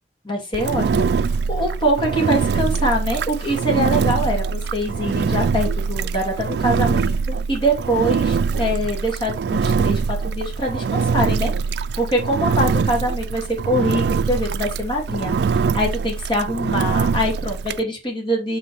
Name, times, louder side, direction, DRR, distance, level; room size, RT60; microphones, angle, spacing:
voice 1, 0.2-18.6, equal, 30° left, 0 dB, 2.5 m, -24 dB
Engine, 0.5-17.8, right 5 dB, 65° right, 0.3 m, -23 dB
6.2 x 5.7 x 3.4 m, 0.24 s
head